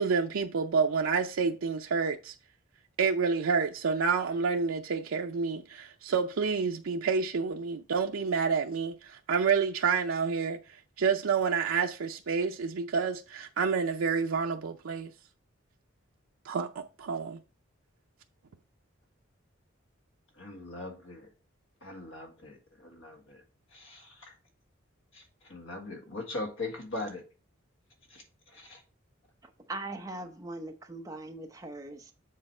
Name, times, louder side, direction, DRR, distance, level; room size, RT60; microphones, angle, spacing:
voice 1, 0.0-2.3 3.0-10.6 11.0-15.1 16.4-16.7 17.0-17.4, right 5 dB, 80° right, 0.5 m, -28 dB
voice 2, 20.4-21.3 21.8-23.4 23.7-24.3 25.1-27.2 28.1-28.8, left 2 dB, 70° left, 1.7 m, -41 dB
voice 3, 29.7-32.1, right 2 dB, 15° right, 0.7 m, -40 dB
7.6 x 4.1 x 4.3 m
head